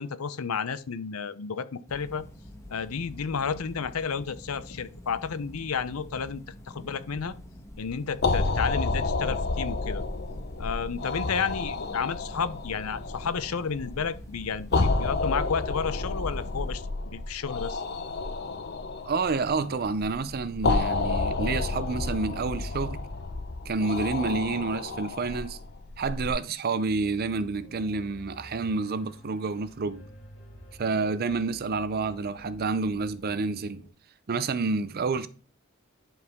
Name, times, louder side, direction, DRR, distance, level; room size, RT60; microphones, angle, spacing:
voice 1, 0.0-2.2 2.7-7.3 7.8-10.0 10.6-17.8, left 6 dB, 85° left, 0.6 m, -32 dB
sound 1, 1.9-16.8, equal, 15° left, 1.2 m, -46 dB
sound 2, 8.1-26.3, left 3 dB, 50° left, 0.7 m, -30 dB
voice 2, 19.0-23.0 23.7-25.6 26.0-30.1 30.8-33.8 34.3-35.3, right 4 dB, 45° right, 0.5 m, -29 dB
Piano, 26.8-33.9, equal, 65° left, 2.3 m, -50 dB
11.0 x 4.8 x 3.6 m
head